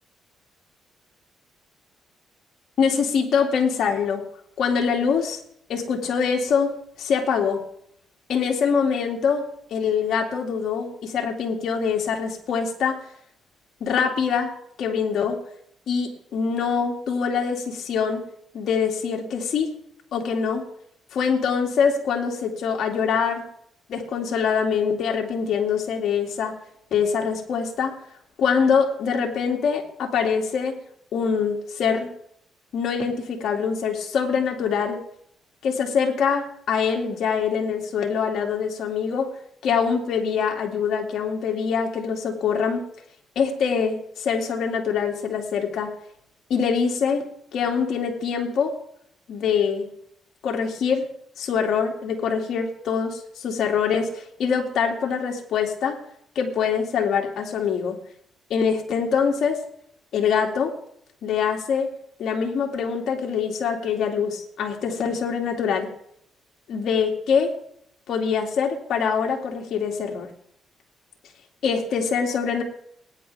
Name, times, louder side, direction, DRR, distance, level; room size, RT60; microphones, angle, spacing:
voice 1, 2.8-4.2 4.6-5.4 5.7-7.6 8.3-13.0 13.8-14.5 14.8-15.4 15.9-18.2 18.5-19.7 20.1-20.6 21.1-23.5 23.9-26.5 26.9-27.9 28.4-30.7 31.1-32.1 32.7-35.0 35.6-39.3 39.6-42.8 43.4-45.9 46.5-48.8 49.3-49.9 50.4-51.1 51.4-56.0 56.4-58.0 58.5-59.6 60.1-60.7 61.2-61.9 62.2-65.9 66.7-67.5 68.1-70.3 71.6-72.6, left 6 dB, 70° left, 1 dB, 2.4 m, -24 dB
20.5 x 9.9 x 3.5 m, 0.68 s
cardioid pair, 90°, 0 cm